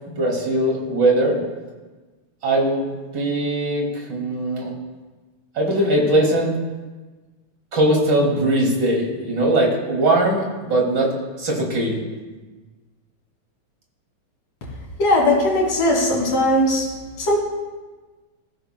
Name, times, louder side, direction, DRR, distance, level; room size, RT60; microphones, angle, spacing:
voice 1, 0.1-1.4 2.4-2.9 3.1-4.7 5.5-6.5 7.7-12.0, right 1 dB, 35° right, -1 dB, 2.8 m, -20 dB
voice 2, 15.0-16.9 17.2-17.4, left 1 dB, 60° left, -3 dB, 4.2 m, -18 dB
20.0 x 15.0 x 2.2 m, 1.3 s
omnidirectional pair, 3.4 m